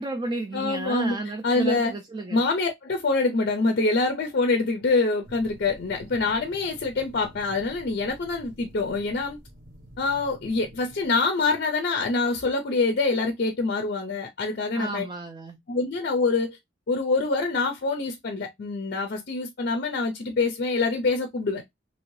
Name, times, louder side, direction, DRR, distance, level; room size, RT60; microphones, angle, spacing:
voice 1, 0.0-2.4 14.7-15.6, right 2 dB, 25° right, 0.4 m, -32 dB
voice 2, 0.5-1.2 1.4-1.9 2.3-9.4 10.0-15.0 15.7-16.6 16.9-21.6, left 3 dB, 50° left, 0.5 m, -25 dB
sound 1, 5.2-11.1, equal, 45° right, 0.8 m, -48 dB
2.8 x 2.7 x 3.0 m
head